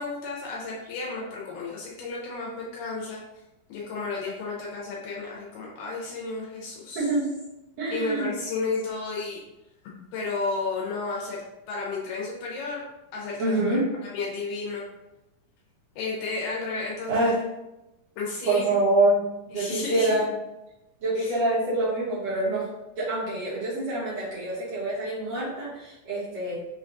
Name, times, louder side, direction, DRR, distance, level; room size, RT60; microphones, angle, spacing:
voice 1, 0.0-3.2 3.7-7.1 7.9-9.4 9.8-12.8 13.1-13.8 14.1-14.9 16.0-17.3 18.2-18.7 19.5-20.3 21.2-21.4, left 3 dB, 75° left, -3 dB, 2.1 m, -32 dB
voice 2, 7.0-7.3 7.8-8.3 13.4-13.8 17.1-17.4 18.5-20.3 21.0-26.6, right 2 dB, 60° right, -10 dB, 2.0 m, -26 dB
5.7 x 2.3 x 2.5 m, 0.95 s
omnidirectional pair, 4.1 m